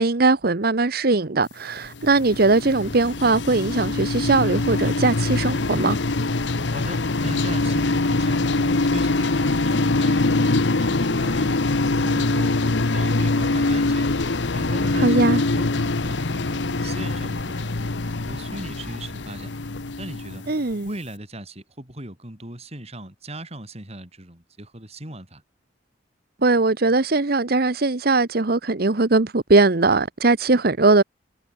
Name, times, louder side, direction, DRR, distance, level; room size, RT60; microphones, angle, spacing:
voice 1, 0.0-6.0 14.9-15.4 20.5-20.9 26.4-31.0, right 3 dB, 55° right, 1.0 m, -20 dB
sound 1, 1.8-20.8, left 2 dB, 75° left, 1.1 m, -23 dB
voice 2, 6.7-11.5 12.0-12.6 12.9-14.1 14.5-17.7 18.2-19.5 20.0-20.4 20.8-25.4, right 1 dB, 35° right, 5.6 m, -37 dB
head